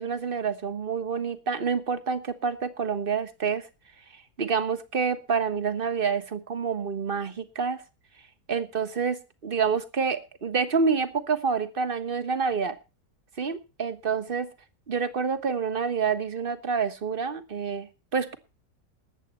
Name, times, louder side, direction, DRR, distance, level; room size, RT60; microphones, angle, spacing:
voice 1, 0.0-3.7 4.4-7.8 8.5-12.8 13.4-14.5 14.9-18.4, right 5 dB, 35° right, 10 dB, 1.4 m, -28 dB
20.0 x 8.2 x 4.3 m, 0.31 s
omnidirectional pair, 1.7 m